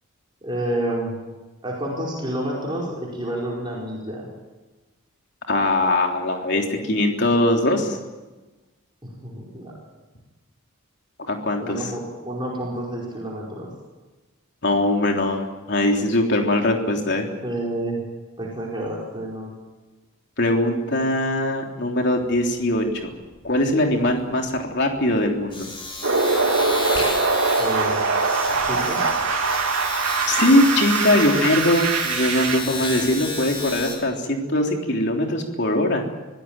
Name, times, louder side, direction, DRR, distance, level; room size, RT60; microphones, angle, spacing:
voice 1, 0.4-1.1 1.6-4.3 9.0-9.7 11.6-13.7 17.4-18.0 18.4-19.5 27.6-28.0 28.7-29.0, right 1 dB, 20° right, -4 dB, 4.9 m, -29 dB
voice 2, 5.5-8.0 11.3-11.8 14.6-17.3 20.4-23.1 23.4-25.7 30.3-36.0, left 1 dB, 50° left, 2 dB, 3.5 m, -21 dB
Domestic sounds home sounds, 22.2-22.4 22.7-34.0, left 2 dB, 25° left, 5.7 m, -32 dB
sound 1, 26.0-32.6, right 4 dB, 90° right, 3.2 m, -22 dB
25.0 x 16.5 x 9.0 m, 1.2 s
head